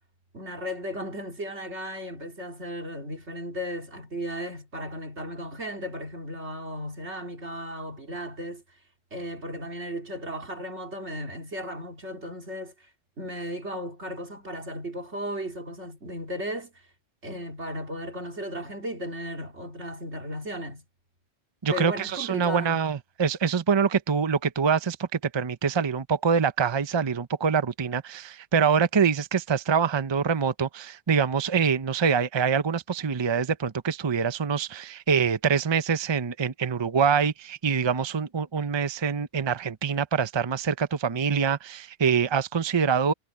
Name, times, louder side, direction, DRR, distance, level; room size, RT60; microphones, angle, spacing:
voice 1, 0.3-8.6 9.1-12.7 13.2-16.8 17.2-20.8 21.7-22.8, equal, 85° right, 3.8 m, -35 dB
voice 2, 21.6-43.1, right 6 dB, 30° right, 0.7 m, -25 dB
omnidirectional pair, 1.1 m